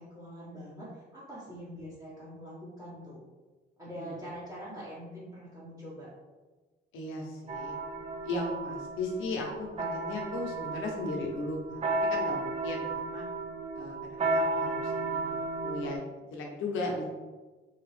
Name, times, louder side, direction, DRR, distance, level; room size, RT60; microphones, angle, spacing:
voice 1, 0.0-3.2 3.8-6.1, equal, 15° right, -12 dB, 1.4 m, -44 dB
voice 2, 6.9-7.8 8.2-13.3 13.7-17.0, left 2 dB, 85° left, 0 dB, 0.8 m, -37 dB
sound 1, 7.5-16.0, right 2 dB, 35° right, 0.4 m, -33 dB
2.9 x 2.8 x 3.2 m, 1.3 s
cardioid pair, 90°, 20 cm